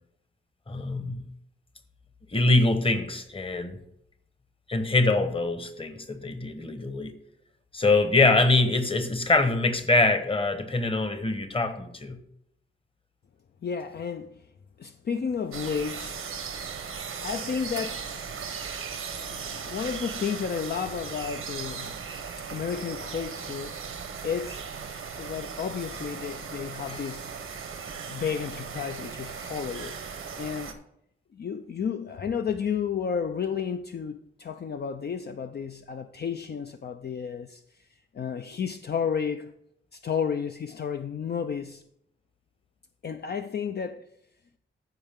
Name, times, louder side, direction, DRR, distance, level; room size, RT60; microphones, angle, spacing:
voice 1, 0.7-1.2 2.3-3.8 4.7-7.1 7.7-12.2 26.9-27.0, left 2 dB, 25° left, 1.1 m, -24 dB
voice 2, 13.6-14.4 14.8-16.2 17.2-18.0 18.3-18.4 19.1-22.1 22.5-23.9 24.2-24.6 25.2-27.3 28.1-30.0 30.4-30.8 31.3-37.9 38.1-39.5 39.9-41.8 43.0-44.1, left 7 dB, 50° left, 0.5 m, -32 dB
sound 1, 15.5-30.7, right 6 dB, 85° right, 1.1 m, -37 dB
14.0 x 4.8 x 3.6 m
wide cardioid pair, 100°, 21 cm